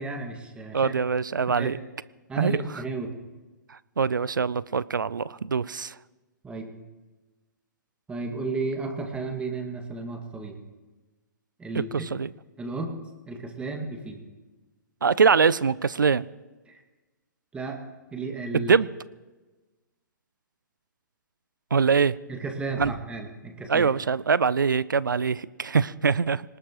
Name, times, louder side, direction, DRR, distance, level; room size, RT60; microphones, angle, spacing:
voice 1, 0.0-0.9 1.5-1.8 2.3-3.1 6.4-6.7 8.1-10.6 11.6-11.9 12.6-13.0 13.3-14.2 16.7-16.8 17.5-17.8 18.1-18.7 22.3-23.9, right 3 dB, 10° right, 4 dB, 2.1 m, -33 dB
voice 2, 0.7-1.8 2.4-2.6 4.0-5.9 12.1-12.3 15.0-16.2 18.5-18.9 21.7-22.1 22.8-22.9 23.7-26.4, right 5 dB, 80° right, 20 dB, 0.5 m, -23 dB
24.5 x 19.5 x 3.1 m, 1.2 s
figure-of-eight pair, 120°, 10 cm